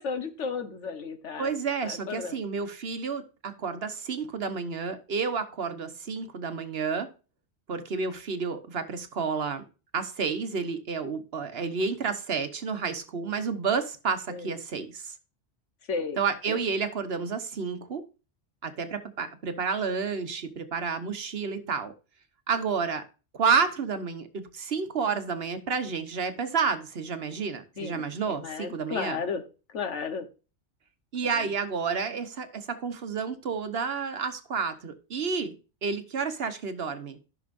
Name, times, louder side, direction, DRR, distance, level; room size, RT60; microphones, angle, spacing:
voice 1, 0.0-1.6 1.8-2.4 14.3-14.6 15.9-16.2 16.5-16.6 27.8-29.4 29.7-30.3 31.2-31.5, left 5 dB, 80° left, 1.4 m, -34 dB
voice 2, 1.4-7.1 7.7-9.6 9.9-15.1 16.2-18.0 18.6-21.9 22.5-23.0 23.3-29.2 31.1-37.2, right 5 dB, 60° right, 1.2 m, -30 dB
14.0 x 6.1 x 2.6 m
omnidirectional pair, 1.2 m